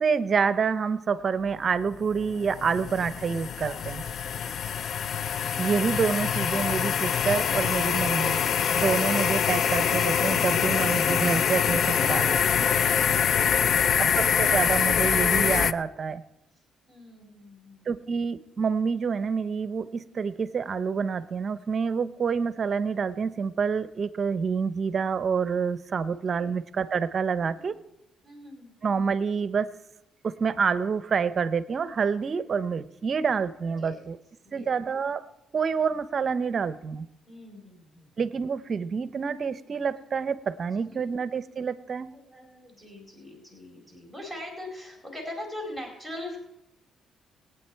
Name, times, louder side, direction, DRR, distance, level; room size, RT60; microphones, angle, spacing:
voice 1, 0.0-4.0 5.6-8.4 8.7-12.7 14.0-16.2 17.9-27.7 28.8-29.7 30.2-34.2 34.5-35.2 35.5-37.1 38.2-42.1, right 6 dB, 45° right, 0.6 m, -27 dB
sound 1, 1.9-15.7, left 7 dB, 60° left, 0.4 m, -25 dB
voice 2, 3.6-4.9 16.9-18.0 26.0-26.5 27.5-27.7 28.2-28.7 33.8-34.1 34.4-34.8 37.3-38.1 40.8-41.1 42.1-46.4, left 1 dB, 15° left, 4.5 m, -43 dB
22.0 x 9.0 x 4.5 m
cardioid pair, 90°, 0 cm